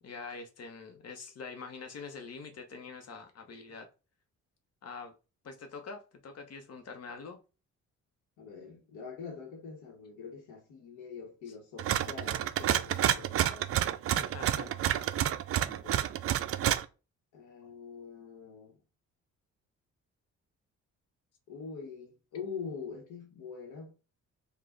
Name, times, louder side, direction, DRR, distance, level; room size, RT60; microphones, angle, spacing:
voice 1, 0.0-3.9 4.8-5.1 5.4-7.4 11.5-11.6 14.1-14.7, left 4 dB, 55° left, 1.0 m, -45 dB
voice 2, 8.4-13.7 14.5-14.7 15.6-16.0 17.3-18.8 21.5-23.9, left 5 dB, 85° left, 1.1 m, -44 dB
sound 1, 11.8-16.8, right 11 dB, 50° right, 0.4 m, -29 dB
4.9 x 2.4 x 3.8 m
cardioid pair, 90°, 30 cm